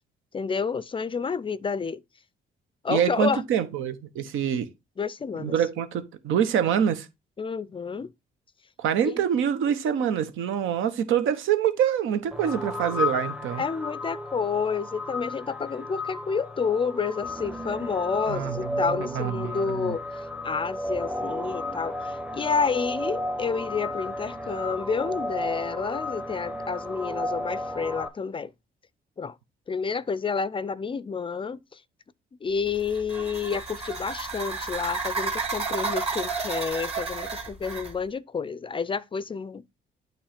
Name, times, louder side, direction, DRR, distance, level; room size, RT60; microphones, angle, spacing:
voice 1, 0.3-2.0 2.8-3.4 5.0-5.5 7.4-8.1 9.1-9.2 13.6-20.0 20.4-28.5 29.2-29.4 29.7-31.8 32.4-39.6, left 5 dB, 25° left, 0.4 m, -29 dB
voice 2, 2.9-4.7 5.4-7.1 8.8-13.6 18.3-19.9, right 9 dB, 85° right, 0.9 m, -26 dB
sound 1, 12.3-28.1, left 1 dB, 5° right, 0.7 m, -33 dB
sound 2, 32.7-38.0, right 4 dB, 30° right, 2.7 m, -32 dB
8.7 x 3.1 x 5.0 m
cardioid pair, 90°, 20 cm